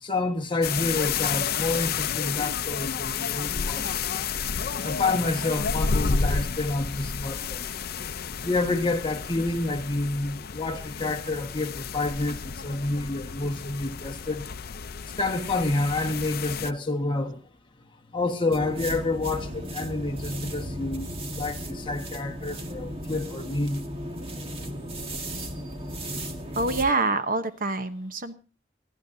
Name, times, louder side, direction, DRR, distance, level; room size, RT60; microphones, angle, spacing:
voice 1, 0.0-4.0 4.8-7.7 8.4-14.4 15.2-17.4 18.1-23.9, left 2 dB, 30° left, 1.5 m, -28 dB
sound 1, 0.6-16.7, left 6 dB, 60° left, 0.6 m, -31 dB
sound 2, 18.5-26.9, equal, 35° right, 1.8 m, -35 dB
voice 2, 26.5-28.3, right 3 dB, 50° right, 1.0 m, -26 dB
28.0 x 11.0 x 2.7 m
head